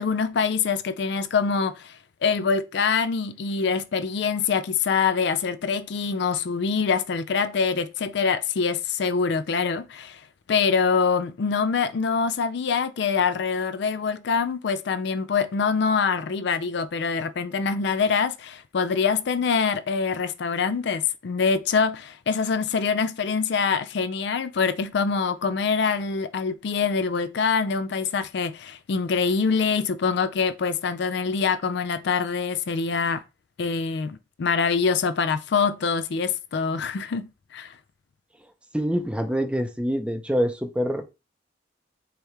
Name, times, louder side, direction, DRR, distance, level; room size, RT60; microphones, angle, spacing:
voice 1, 0.0-10.2 10.5-33.2 33.6-37.7, left 5 dB, 65° left, 0.4 m, -25 dB
voice 2, 38.7-41.0, equal, 5° right, 0.6 m, -25 dB
4.7 x 3.4 x 3.3 m
head